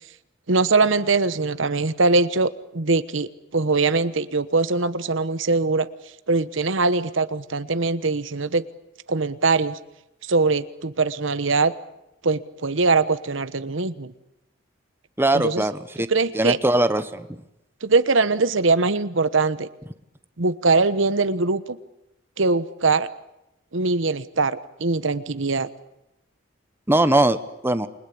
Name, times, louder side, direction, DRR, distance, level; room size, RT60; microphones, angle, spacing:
voice 1, 0.5-5.9 6.3-8.6 9.1-9.8 10.3-11.7 12.2-14.1 15.3-15.6 16.1-16.6 17.8-19.7 20.4-21.8 22.4-23.1 23.7-25.7, right 3 dB, 75° right, 13 dB, 1.1 m, -22 dB
voice 2, 15.2-16.1 16.3-17.3 26.9-27.4 27.6-27.9, right 1 dB, 10° right, 11 dB, 1.0 m, -20 dB
28.5 x 22.0 x 8.6 m, 0.87 s
head